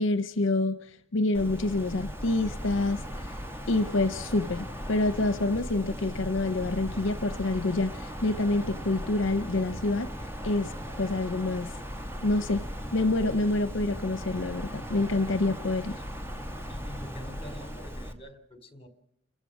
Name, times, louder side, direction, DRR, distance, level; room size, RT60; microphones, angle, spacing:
voice 1, 0.0-3.4 3.7-10.1 10.4-10.7 11.0-11.7 12.2-12.6 12.9-16.0, left 2 dB, 70° left, 12 dB, 0.8 m, -27 dB
Wind, 1.3-18.1, equal, 15° right, 2.0 m, -38 dB
voice 2, 16.7-18.9, equal, 30° left, 9 dB, 3.1 m, -46 dB
29.0 x 15.0 x 6.1 m, 0.78 s
head